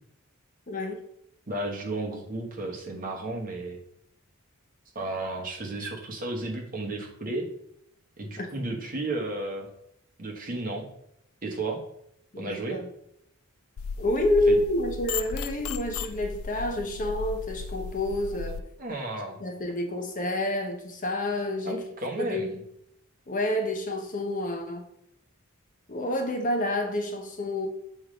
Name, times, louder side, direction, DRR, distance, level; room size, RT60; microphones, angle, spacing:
voice 1, 0.7-1.0 8.4-8.5 12.3-12.9 14.0-18.6 19.4-21.9 22.2-22.6 23.3-24.8 25.9-27.7, left 1 dB, 35° left, 3 dB, 0.8 m, -28 dB
voice 2, 1.5-3.8 4.9-7.5 8.2-9.7 10.2-10.9 11.4-11.8 12.4-12.8 14.5-14.6 18.3-18.4 18.8-19.4 21.6-22.5, right 2 dB, 40° right, 0 dB, 1.1 m, -33 dB
sound 1, 13.8-18.6, left 6 dB, 70° left, 0.3 m, -35 dB
7.0 x 3.2 x 5.1 m, 0.75 s
head